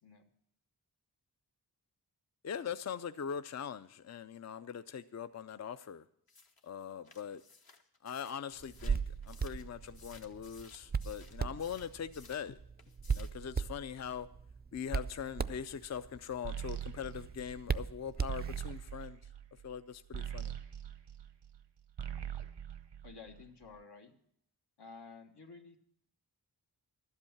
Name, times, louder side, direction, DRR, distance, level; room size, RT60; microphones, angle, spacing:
voice 1, 2.4-6.1 6.6-7.4 8.0-12.6 13.1-14.3 14.7-19.2 19.6-20.6, left 7 dB, 45° left, 12 dB, 0.4 m, -42 dB
sound 1, 6.3-12.5 12.8-13.4, left 4 dB, 60° left, 1.1 m, -59 dB
Hands, 8.6-18.9, right 5 dB, 25° right, 0.4 m, -39 dB
sound 2, 16.4-21.6 21.9-23.6, right 9 dB, 90° right, 0.8 m, -43 dB
voice 2, 23.0-24.1 24.8-25.8, left 4 dB, 75° left, 4 dB, 1.4 m, -52 dB
12.0 x 8.1 x 7.1 m, 0.71 s
wide cardioid pair, 75°, 41 cm